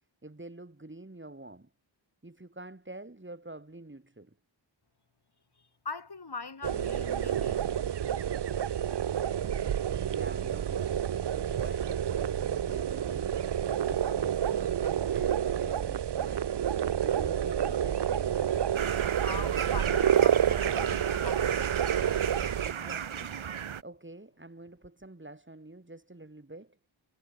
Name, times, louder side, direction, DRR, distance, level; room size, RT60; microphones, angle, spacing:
voice 1, 0.2-1.7 2.2-4.3 10.1-11.0 11.3-13.5 13.9-16.6 17.0-18.6 22.6-23.4 23.8-26.8, right 2 dB, 25° right, 3.3 m, -47 dB
voice 2, 5.8-7.6 19.2-21.8, left 4 dB, 55° left, 3.2 m, -41 dB
sound 1, 6.6-22.7, right 9 dB, 60° right, 0.6 m, -29 dB
sound 2, 18.7-23.8, right 8 dB, 80° right, 1.0 m, -35 dB
wide cardioid pair, 70°, 47 cm